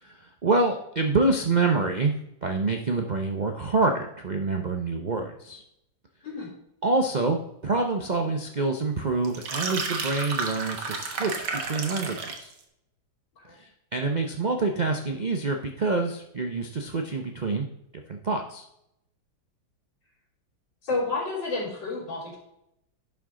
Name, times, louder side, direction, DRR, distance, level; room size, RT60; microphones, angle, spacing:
voice 1, 0.0-2.1 2.4-5.6 6.8-12.5 13.5-17.7 18.1-18.6, right 3 dB, 85° right, 4 dB, 0.4 m, -26 dB
sound 1, 9.2-12.5, right 4 dB, 65° right, 1.8 m, -32 dB
voice 2, 20.8-22.4, left 3 dB, 80° left, -11 dB, 4.4 m, -30 dB
11.0 x 5.9 x 3.7 m, 0.80 s
omnidirectional pair, 2.0 m